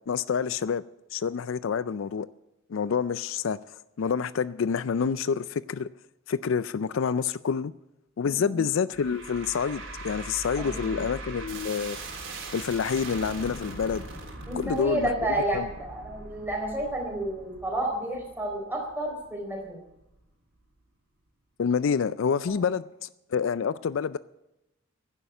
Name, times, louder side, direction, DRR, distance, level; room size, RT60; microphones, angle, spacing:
voice 1, 0.1-0.8 1.1-2.3 2.7-3.6 4.0-5.9 6.3-7.7 8.2-12.0 12.5-14.1 14.5-15.1 15.5-15.7 21.6-24.2, left 6 dB, 65° left, 0.4 m, -27 dB
sound 1, 8.9-20.2, right 2 dB, 65° right, 3.6 m, -41 dB
voice 2, 10.6-11.0 14.5-19.8 22.5-22.6, right 1 dB, 10° right, 4.2 m, -31 dB
11.5 x 10.5 x 8.2 m
head